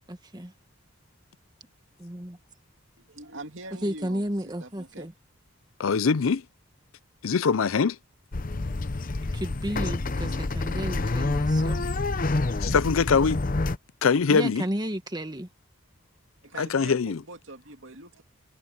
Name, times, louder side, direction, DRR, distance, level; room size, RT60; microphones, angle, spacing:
voice 1, 0.1-0.5 2.0-2.4 3.8-5.1 9.3-11.9 14.3-15.5, equal, 20° right, 1.5 m, -32 dB
voice 2, 3.0-4.2 4.6-5.1 16.4-18.2, right 2 dB, 70° right, 2.5 m, -43 dB
voice 3, 5.8-6.5 7.2-8.0 12.6-13.4 14.0-14.7 16.6-17.2, left 5 dB, 90° left, 0.5 m, -23 dB
sound 1, 8.3-13.8, left 2 dB, 45° left, 0.7 m, -27 dB
head